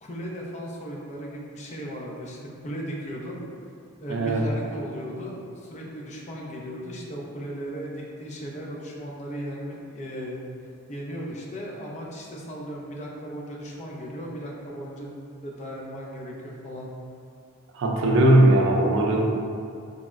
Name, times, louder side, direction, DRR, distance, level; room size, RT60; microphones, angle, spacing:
voice 1, 0.0-2.4 2.6-3.4 4.0-10.4 10.9-15.1 15.4-16.9, equal, 35° left, -3 dB, 0.4 m, -36 dB
voice 2, 4.1-4.4 17.7-19.2, right 1 dB, 60° right, -1 dB, 0.4 m, -19 dB
4.0 x 2.0 x 2.3 m, 2.4 s
head